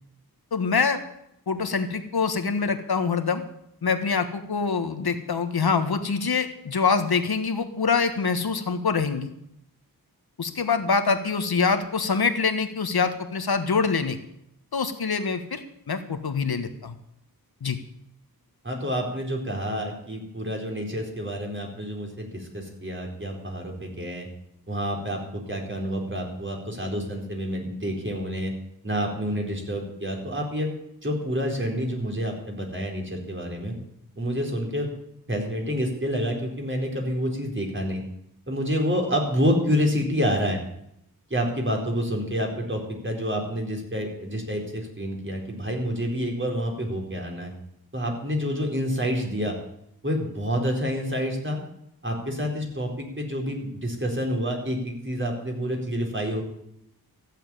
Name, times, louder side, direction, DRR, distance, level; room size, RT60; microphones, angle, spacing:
voice 1, 0.5-1.0 1.5-3.4 3.8-9.3 10.4-14.2 14.7-15.6 15.9-16.9 17.6-17.8, left 5 dB, 75° left, 8 dB, 1.6 m, -25 dB
voice 2, 18.6-24.3 24.7-28.5 28.8-30.7 31.0-33.7 34.2-34.9 35.3-38.0 38.5-40.6 41.3-47.5 47.9-49.6 50.0-51.6 52.0-56.4, equal, 30° right, 0 dB, 4.3 m, -28 dB
14.5 x 7.6 x 9.1 m, 0.77 s
wide cardioid pair, 60°, 38 cm